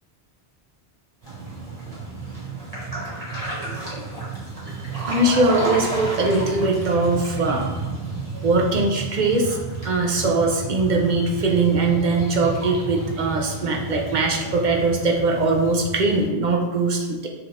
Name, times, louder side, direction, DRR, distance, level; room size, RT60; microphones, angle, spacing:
sound 1, 1.2-16.2, right 3 dB, 35° right, 1.5 m, -31 dB
voice 1, 4.7-7.9 8.4-9.6 9.8-17.3, right 3 dB, 55° right, 1 dB, 0.7 m, -21 dB
6.2 x 2.4 x 3.3 m, 1.2 s
omnidirectional pair, 1.0 m